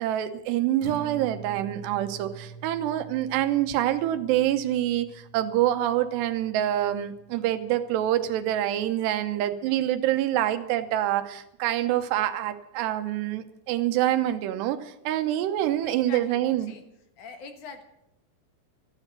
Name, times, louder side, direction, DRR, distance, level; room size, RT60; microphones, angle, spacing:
voice 1, 0.0-16.8, right 12 dB, 80° right, 9 dB, 3.1 m, -26 dB
Acoustic guitar, 0.8-8.9, right 5 dB, 50° right, 2.3 m, -46 dB
voice 2, 15.8-16.8 17.2-17.8, left 5 dB, 60° left, 7 dB, 2.4 m, -43 dB
14.5 x 10.0 x 8.8 m, 0.83 s
omnidirectional pair, 4.8 m